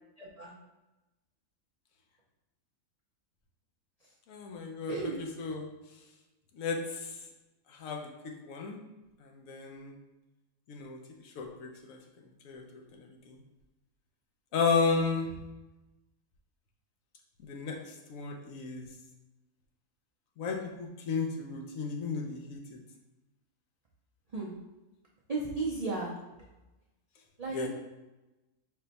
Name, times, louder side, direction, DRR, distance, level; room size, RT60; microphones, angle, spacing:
voice 1, 0.2-0.5 4.9-5.2 14.9-15.0 24.3-24.5 25.3-26.1 27.4-27.7, right 3 dB, 70° right, -4 dB, 0.3 m, -34 dB
voice 2, 4.3-5.0 5.4-5.7 6.6-7.1 7.7-8.1 8.4-8.8 9.2-9.9 10.7-11.0 11.2-12.0 12.4-13.4 14.5-15.3 17.4-18.9 20.4-22.8 27.5-27.7, left 5 dB, 75° left, 2 dB, 1.0 m, -33 dB
4.2 x 2.2 x 3.9 m, 1.0 s
omnidirectional pair, 1.5 m